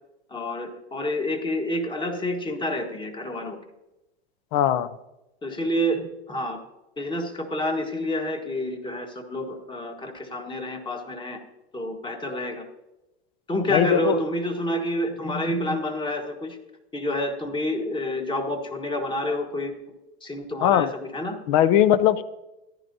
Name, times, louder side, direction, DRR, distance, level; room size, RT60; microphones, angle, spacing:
voice 1, 0.3-3.6 5.4-6.6 7.0-11.4 11.7-12.7 13.5-16.6 16.9-19.7 20.2-21.4, left 1 dB, 15° left, 4 dB, 1.4 m, -28 dB
voice 2, 4.5-4.9 13.7-14.2 20.6-20.9 21.5-22.2, left 11 dB, 50° left, 15 dB, 0.7 m, -19 dB
14.5 x 11.0 x 2.7 m, 0.95 s
hypercardioid pair, 110°, 30 cm